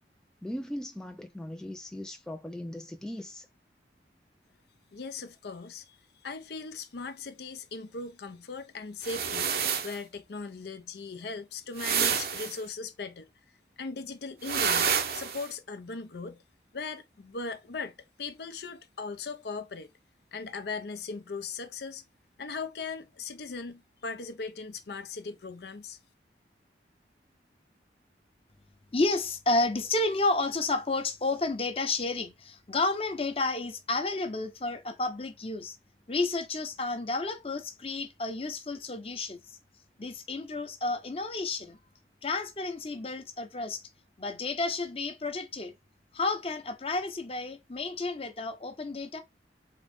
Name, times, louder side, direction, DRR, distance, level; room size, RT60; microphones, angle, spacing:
voice 1, 0.4-3.5, left 1 dB, 5° left, 0.3 m, -39 dB
voice 2, 4.9-6.0 6.2-9.5 9.8-13.3 13.8-16.4 16.7-19.9 20.3-22.0 22.4-26.0, left 4 dB, 65° left, 0.6 m, -39 dB
sound 1, 9.0-10.0 11.8-12.6 14.4-15.5, right 7 dB, 55° right, 0.7 m, -28 dB
voice 3, 28.9-35.8 36.1-39.4 40.0-41.8 42.2-43.8 44.2-45.7 46.1-49.2, left 2 dB, 30° left, 0.8 m, -31 dB
3.7 x 3.6 x 3.4 m
head